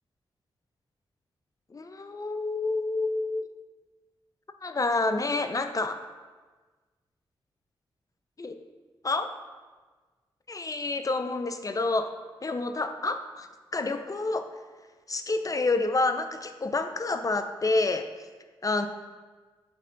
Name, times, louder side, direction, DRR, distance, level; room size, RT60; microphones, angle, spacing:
voice 1, 1.7-3.5 4.6-6.0 8.4-8.6 9.0-9.3 10.5-12.1 12.4-14.5 15.1-18.1 18.6-18.9, left 3 dB, 35° left, 8 dB, 0.6 m, -28 dB
9.0 x 3.2 x 3.9 m, 1.3 s
supercardioid pair, 40°, 10 cm